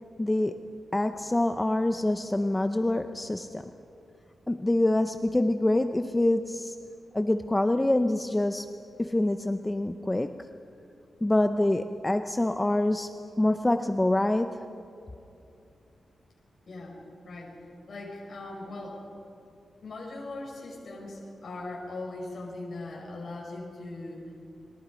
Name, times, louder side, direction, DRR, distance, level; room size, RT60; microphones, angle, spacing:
voice 1, 0.2-0.6 0.9-3.7 4.5-6.8 7.1-8.7 9.0-10.4 11.2-13.1 13.4-14.6, left 1 dB, 15° left, 8 dB, 0.6 m, -26 dB
voice 2, 16.7-17.5 17.9-19.1 19.8-24.2, left 2 dB, 50° left, -3 dB, 5.3 m, -40 dB
30.0 x 22.0 x 5.1 m, 2.7 s
wide cardioid pair, 160°, 0 cm